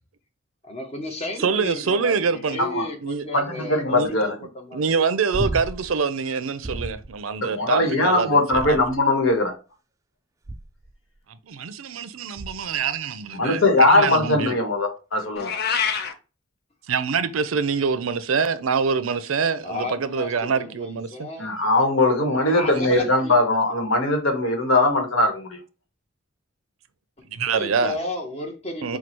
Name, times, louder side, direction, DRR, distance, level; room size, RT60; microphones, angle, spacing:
voice 1, 0.6-4.8 19.6-21.5 22.4-23.3 27.2-29.0, left 1 dB, 30° left, 1.1 m, -33 dB
voice 2, 1.4-2.6 3.0-3.3 3.9-8.8 11.3-14.6 16.9-21.3 27.3-28.0 28.8-29.0, right 5 dB, 90° right, 0.5 m, -25 dB
voice 3, 3.3-4.3 7.5-9.5 13.4-15.5 21.4-25.6, left 2 dB, 75° left, 1.3 m, -20 dB
sound 1, 5.3-6.0 6.6-7.2 8.5-9.2 10.4-10.9 12.4-12.8 15.2-15.3, right 1 dB, 15° right, 0.4 m, -33 dB
Meow, 15.4-16.1, left 6 dB, 55° left, 0.6 m, -25 dB
4.7 x 2.3 x 4.5 m
head